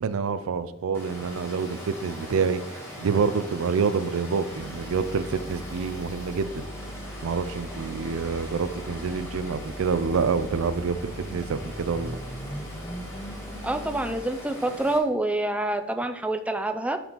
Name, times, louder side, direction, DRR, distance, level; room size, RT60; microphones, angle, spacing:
voice 1, 0.0-6.7 7.2-12.2, right 5 dB, 85° right, 13 dB, 0.4 m, -27 dB
Water, 0.9-15.0, equal, 15° left, 1.6 m, -41 dB
sound 1, 4.5-14.2, equal, 75° left, 2.4 m, -40 dB
voice 2, 13.6-17.0, right 2 dB, 5° right, 7 dB, 0.4 m, -27 dB
11.0 x 4.1 x 3.0 m, 0.91 s
head